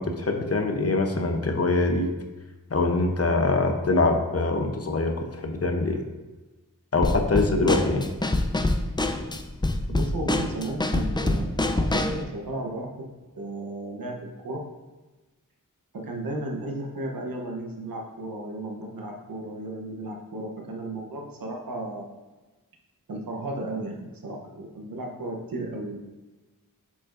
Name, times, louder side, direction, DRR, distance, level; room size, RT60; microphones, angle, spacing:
voice 1, 0.0-2.1 2.7-6.0 6.9-8.1, left 3 dB, 45° left, 4 dB, 0.8 m, -24 dB
Drum kit / Snare drum, 7.0-12.2, left 2 dB, 15° left, 0.4 m, -26 dB
voice 2, 9.9-13.1 13.3-14.6 15.9-22.1 23.1-26.0, right 1 dB, 85° right, 0 dB, 1.0 m, -34 dB
8.3 x 5.2 x 2.6 m, 1.2 s
wide cardioid pair, 65°, 34 cm